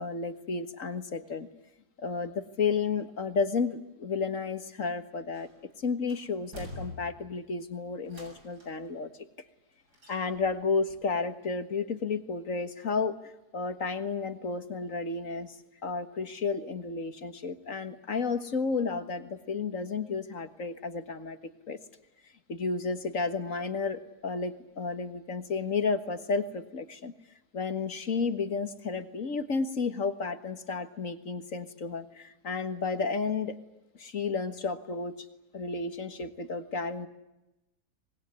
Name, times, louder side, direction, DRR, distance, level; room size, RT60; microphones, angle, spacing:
voice 1, 0.0-1.5 2.0-5.5 5.8-9.1 10.1-15.6 15.8-21.4 21.7-21.8 22.5-27.1 27.5-33.6 33.9-35.2 35.5-37.1, left 4 dB, 50° left, 10 dB, 1.9 m, -32 dB
sound 1, 5.3-5.7 6.1-7.5 8.1-8.9 9.9-10.6 10.9-11.0, left 1 dB, 70° right, 7.5 m, -45 dB
25.0 x 21.5 x 9.6 m, 0.96 s
omnidirectional pair, 1.8 m